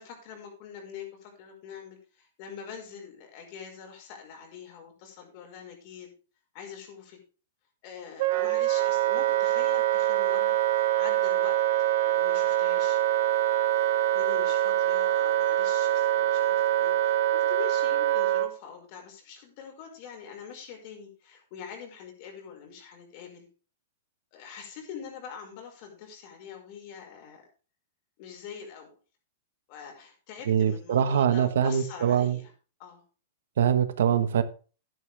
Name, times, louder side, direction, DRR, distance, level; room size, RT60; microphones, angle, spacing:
voice 1, 0.0-6.1 6.5-7.2 7.8-11.6 12.0-13.0 14.1-23.5 24.3-27.4 28.2-28.9 29.7-32.5 32.8-33.0, left 7 dB, 45° left, 5.5 m, -44 dB
Wind instrument woodwind instrument, 8.2-18.5, right 13 dB, 55° right, 1.2 m, -24 dB
voice 2, 30.5-32.4 33.6-34.4, right 8 dB, 80° right, 1.4 m, -23 dB
11.5 x 11.0 x 3.5 m
hypercardioid pair, 145°, 0 cm